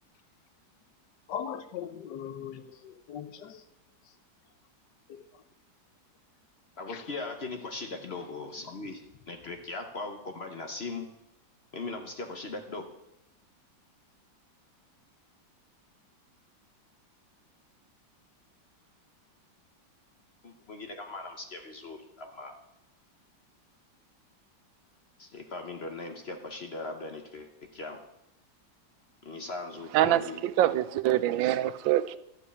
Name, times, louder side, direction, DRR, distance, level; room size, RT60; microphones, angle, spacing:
voice 1, 1.3-3.6 5.1-5.2, left 8 dB, 70° left, 10 dB, 1.3 m, -39 dB
voice 2, 6.8-9.0 9.3-11.1 11.7-12.9 20.4-22.5 25.2-28.0 29.2-30.4, left 3 dB, 45° left, 5 dB, 0.8 m, -39 dB
voice 3, 29.9-32.2, right 13 dB, 85° right, 15 dB, 1.3 m, -25 dB
12.5 x 4.7 x 8.3 m, 0.84 s
omnidirectional pair, 2.0 m